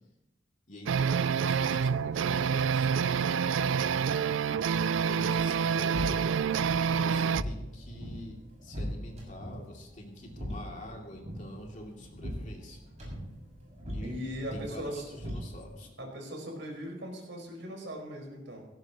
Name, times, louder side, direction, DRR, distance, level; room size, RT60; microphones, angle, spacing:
voice 1, 0.7-4.1 5.0-6.2 6.5-6.6 7.0-12.8 13.9-14.2 14.5-15.9, equal, 40° left, 0 dB, 2.7 m, -46 dB
sound 1, 0.9-7.4, right 6 dB, 90° right, 0.4 m, -27 dB
sound 2, 5.3-15.9, equal, 35° right, 6.5 m, -41 dB
voice 2, 14.0-15.1 16.0-18.6, equal, 75° right, 0 dB, 4.9 m, -39 dB
17.0 x 16.5 x 3.0 m, 0.93 s
head